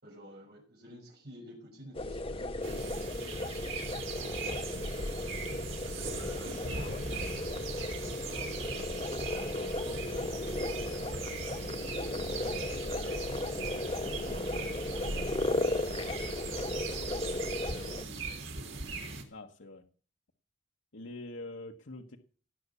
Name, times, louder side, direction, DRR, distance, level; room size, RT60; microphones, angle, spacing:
voice 1, 0.0-3.5 4.1-5.1 5.8-7.2 8.2-11.6 12.5-17.2 17.7-18.5, equal, 55° right, -2 dB, 6.2 m, -51 dB
sound 1, 1.9-18.0, left 2 dB, 30° left, 1.0 m, -35 dB
sound 2, 2.6-19.2, right 4 dB, 90° right, 3.4 m, -40 dB
voice 2, 19.3-19.8 20.9-22.2, left 2 dB, 80° left, 2 dB, 1.4 m, -44 dB
18.0 x 8.4 x 7.0 m, 0.41 s
head